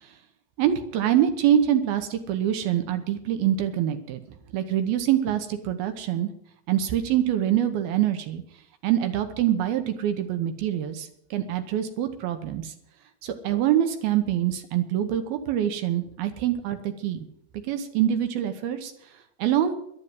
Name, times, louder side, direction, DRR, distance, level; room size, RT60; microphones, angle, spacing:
voice 1, 0.6-4.2 4.5-6.3 6.7-8.4 8.8-12.7 13.2-17.3 17.6-18.9 19.4-19.8, right 11 dB, 80° right, 7 dB, 2.9 m, -25 dB
11.0 x 11.0 x 7.7 m, 0.72 s
omnidirectional pair, 4.5 m